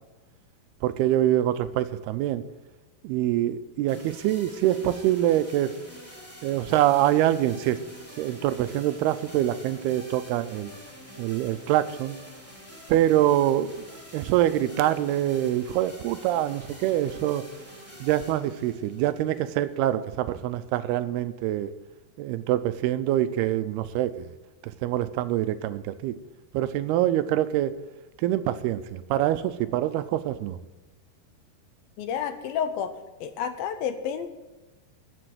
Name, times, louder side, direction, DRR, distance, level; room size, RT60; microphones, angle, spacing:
voice 1, 0.8-2.4 3.0-5.8 6.4-7.8 8.2-10.7 11.2-12.2 12.9-13.7 14.1-17.5 18.0-21.7 22.2-24.3 24.6-26.2 26.5-27.7 28.2-30.6, right 13 dB, 85° right, 12 dB, 2.6 m, -25 dB
sound 1, 3.9-19.9, equal, 5° left, 2.2 m, -47 dB
voice 2, 32.0-32.9 33.2-34.3, left 8 dB, 75° left, 9 dB, 2.4 m, -30 dB
14.0 x 7.0 x 9.3 m, 1.1 s
omnidirectional pair, 4.6 m